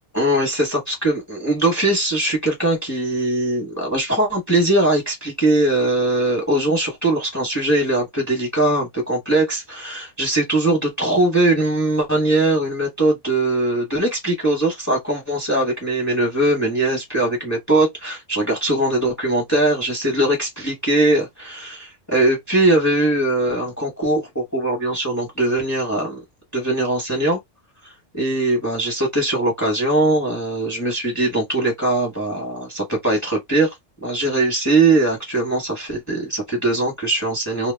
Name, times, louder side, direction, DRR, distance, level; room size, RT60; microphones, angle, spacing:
voice 1, 0.1-26.2 26.5-27.4 28.1-33.7 34.0-37.7, right 2 dB, 15° left, 0.7 m, -20 dB
2.2 x 2.0 x 3.2 m
omnidirectional pair, 1.3 m